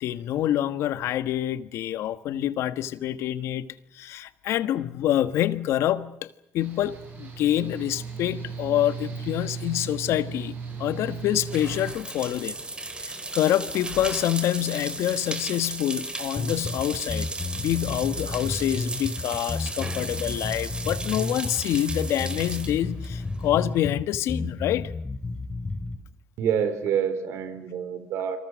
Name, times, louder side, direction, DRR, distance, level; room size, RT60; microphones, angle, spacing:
voice 1, 0.0-3.7 3.9-6.3 6.5-12.6 13.0-17.3 17.6-24.9, left 12 dB, 75° left, 1.4 m, -26 dB
Mechanical fan, 6.6-11.9, right 5 dB, 40° right, 7.6 m, -36 dB
sound 1, 10.7-23.9, right 2 dB, 20° right, 3.8 m, -36 dB
sound 2, 16.4-26.0, left 3 dB, 25° left, 5.3 m, -32 dB
voice 2, 26.4-28.4, right 8 dB, 75° right, 4.2 m, -27 dB
28.0 x 26.5 x 6.4 m
cardioid pair, 90°, 5 cm